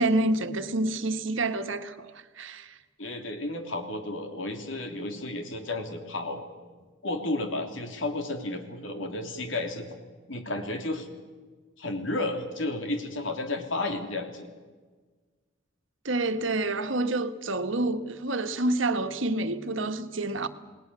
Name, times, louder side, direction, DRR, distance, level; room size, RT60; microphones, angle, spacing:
voice 1, 0.0-2.1 2.4-2.7 16.0-20.5, right 2 dB, 80° right, 1.4 m, -28 dB
voice 2, 3.0-6.4 7.0-9.9 10.3-11.1 11.8-14.5, left 2 dB, 80° left, 3.2 m, -32 dB
28.5 x 19.0 x 6.9 m
head